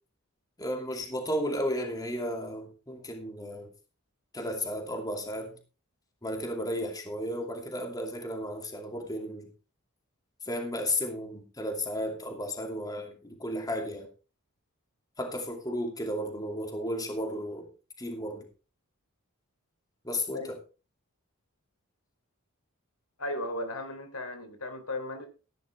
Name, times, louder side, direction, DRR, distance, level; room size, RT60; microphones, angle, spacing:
voice 1, 0.6-3.7 4.3-5.6 6.2-9.5 10.4-14.1 15.2-17.7 18.0-18.5 20.0-20.6, equal, 15° left, 2.6 m, -34 dB
voice 2, 23.2-25.3, left 1 dB, 80° left, 3.3 m, -35 dB
15.0 x 11.0 x 3.5 m
head